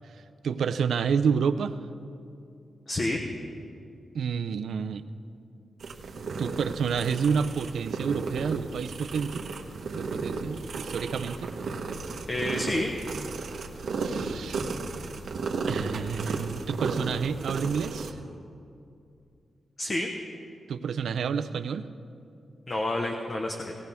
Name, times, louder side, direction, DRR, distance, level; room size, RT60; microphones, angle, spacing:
voice 1, 0.1-1.8 4.1-5.0 6.4-9.5 9.9-11.6 14.0-14.7 15.7-18.2 20.7-21.9, right 6 dB, 90° right, 10 dB, 0.5 m, -29 dB
voice 2, 2.9-3.2 12.3-12.9 19.8-20.1 22.7-23.7, left 1 dB, 30° left, 2 dB, 0.9 m, -29 dB
sound 1, 5.8-18.1, right 4 dB, 70° right, 1.2 m, -34 dB
18.5 x 17.5 x 3.5 m, 2.5 s
wide cardioid pair, 175°, 0 cm